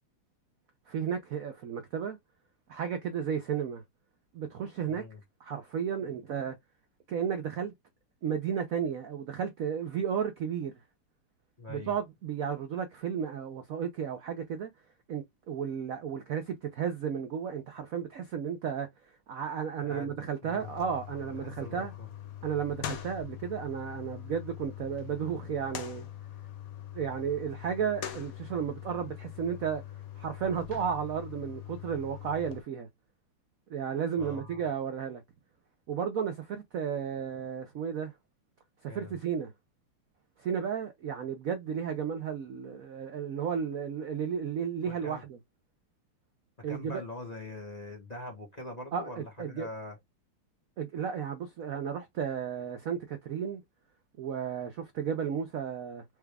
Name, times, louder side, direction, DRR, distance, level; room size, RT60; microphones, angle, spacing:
voice 1, 0.9-2.2 2.7-3.8 4.3-5.0 5.4-6.6 7.1-7.7 8.2-10.7 11.7-14.7 15.1-18.9 19.3-21.9 22.4-26.1 26.9-29.8 30.2-32.9 33.7-35.2 35.9-38.1 38.8-39.5 40.4-45.4 46.6-47.0 48.9-49.7 50.8-53.6 54.2-56.0, right 7 dB, 85° right, 0.7 m, -33 dB
voice 2, 4.8-5.2 11.6-11.9 19.8-20.7 21.3-22.1 34.2-34.6 38.9-39.2 44.9-45.2 46.7-50.0, left 2 dB, 30° left, 0.7 m, -43 dB
sound 1, 20.6-32.6, left 11 dB, 70° left, 0.8 m, -43 dB
4.7 x 2.3 x 3.2 m
omnidirectional pair, 2.3 m